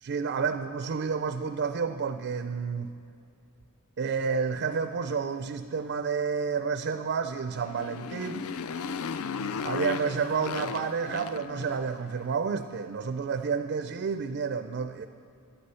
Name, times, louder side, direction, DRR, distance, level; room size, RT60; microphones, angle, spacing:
voice 1, 0.0-2.9 4.0-8.5 9.6-15.1, right 5 dB, 50° right, 9 dB, 0.4 m, -30 dB
Motorcycle, 7.5-12.1, left 6 dB, 70° left, 0.4 m, -35 dB
11.5 x 9.5 x 5.6 m, 2.6 s
head